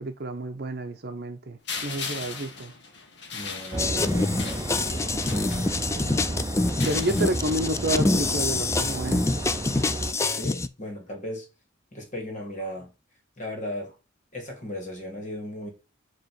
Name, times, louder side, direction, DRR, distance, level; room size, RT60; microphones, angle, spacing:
voice 1, 0.0-2.7 6.8-9.2, right 1 dB, 55° right, 0.7 m, -30 dB
sound 1, 1.7-6.1 6.7-7.9, left 5 dB, 60° left, 1.2 m, -38 dB
voice 2, 3.3-4.8 10.3-11.5 11.9-12.9 13.4-14.0 14.3-15.7, left 1 dB, 40° left, 2.2 m, -36 dB
sound 2, 3.7-10.1, right 1 dB, 20° right, 0.7 m, -32 dB
sound 3, 3.8-10.7, left 3 dB, 15° left, 0.3 m, -26 dB
7.7 x 3.1 x 4.7 m
head